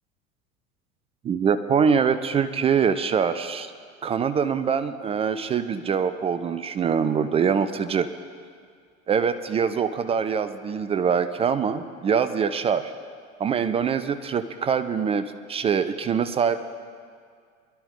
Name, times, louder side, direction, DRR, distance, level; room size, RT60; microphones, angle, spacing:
voice 1, 1.2-3.7 4.0-8.1 9.1-12.9 13.4-16.6, right 6 dB, 15° right, 11 dB, 0.3 m, -24 dB
22.0 x 12.0 x 3.7 m, 2.1 s
figure-of-eight pair, 75°, 41 cm